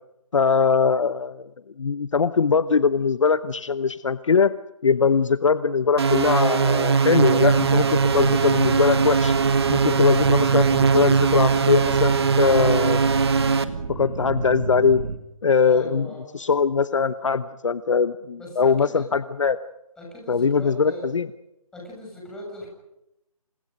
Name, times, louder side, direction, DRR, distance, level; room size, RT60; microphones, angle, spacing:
voice 1, 0.3-1.4 1.8-4.5 4.8-9.3 9.7-13.0 13.9-15.0 15.4-16.1 16.3-19.6 20.3-21.3, left 5 dB, 55° left, 14 dB, 0.9 m, -21 dB
sound 1, 6.0-13.6, right 5 dB, 45° right, 1.9 m, -20 dB
sound 2, 7.2-15.2, right 3 dB, 65° right, 4.5 m, -31 dB
voice 2, 15.6-16.3 18.4-19.1 20.0-21.1 21.7-22.7, left 1 dB, 5° left, -2 dB, 7.2 m, -39 dB
28.5 x 28.0 x 5.3 m, 0.87 s
figure-of-eight pair, 160°, 19 cm